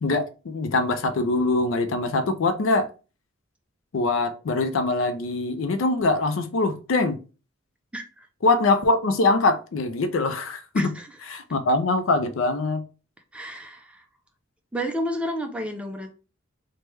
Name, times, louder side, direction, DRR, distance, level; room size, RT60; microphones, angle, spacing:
voice 1, 0.0-2.9 3.9-7.2 8.4-10.9 11.3-12.8, left 2 dB, 70° left, 0.4 m, -23 dB
voice 2, 7.9-8.3 10.8-11.1 13.3-14.0 14.7-16.1, equal, 5° right, 0.4 m, -31 dB
3.1 x 2.1 x 3.2 m
head